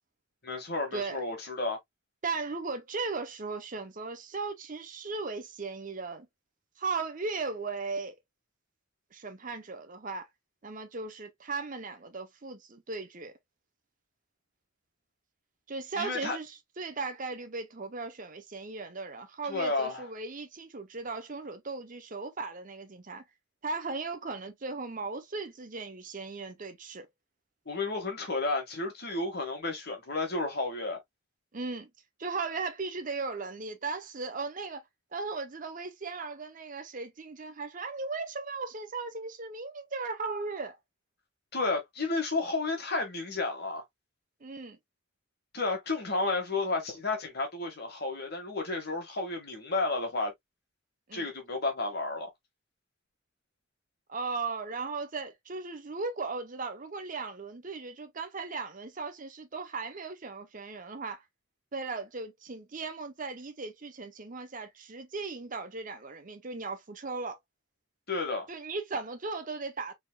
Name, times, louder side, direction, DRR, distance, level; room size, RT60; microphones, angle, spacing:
voice 1, 0.4-1.8 16.0-16.4 19.5-20.0 27.6-31.0 41.5-43.8 45.5-50.3 51.1-52.3 68.1-68.5, left 3 dB, 50° left, 1.7 m, -32 dB
voice 2, 2.2-6.3 6.8-8.2 9.1-10.3 10.6-13.4 15.7-23.2 23.6-27.1 31.5-31.9 32.2-34.8 35.1-40.8 44.4-44.8 51.1-51.3 54.1-61.2 61.7-67.4 68.5-69.9, right 4 dB, 40° right, 0.7 m, -37 dB
4.4 x 3.6 x 2.2 m
head